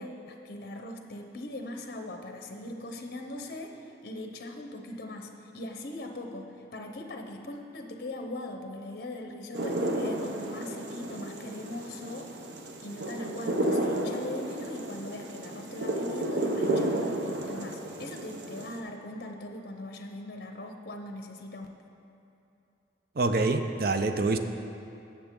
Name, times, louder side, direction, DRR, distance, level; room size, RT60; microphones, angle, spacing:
voice 1, 0.0-12.3 12.8-21.7, left 1 dB, 55° left, 4 dB, 0.7 m, -40 dB
sound 1, 9.5-18.8, right 1 dB, 90° right, 0.9 m, -32 dB
voice 2, 23.2-24.4, right 3 dB, 55° right, 7 dB, 0.6 m, -26 dB
16.0 x 7.0 x 3.7 m, 2.7 s
head